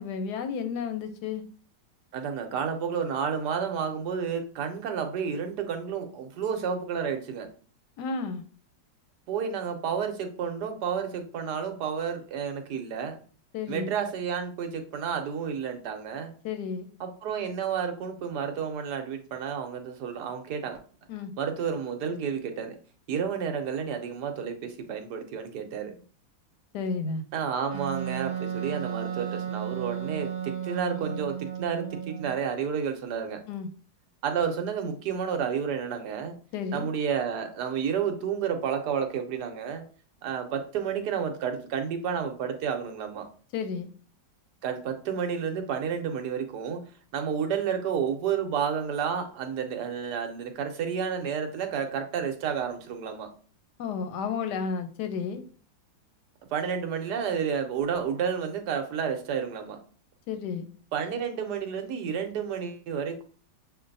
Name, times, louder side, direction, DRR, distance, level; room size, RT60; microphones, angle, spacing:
voice 1, 0.0-1.4 8.0-8.4 13.5-13.9 16.4-16.9 21.1-21.3 26.7-27.2 33.5-33.7 36.5-36.9 43.5-43.9 53.8-55.4 60.3-60.7, left 5 dB, 70° left, 9 dB, 1.1 m, -32 dB
voice 2, 2.1-7.5 9.3-13.2 13.7-16.3 17.0-20.8 21.4-22.8 23.1-25.9 27.3-33.4 34.2-36.3 36.7-39.8 40.2-43.3 44.6-46.8 47.1-53.3 56.5-59.8 60.9-63.2, right 7 dB, 70° right, 6 dB, 1.2 m, -31 dB
Wind instrument woodwind instrument, 27.7-32.4, right 9 dB, 35° right, 0.7 m, -34 dB
6.8 x 2.5 x 2.6 m, 0.40 s
omnidirectional pair, 2.0 m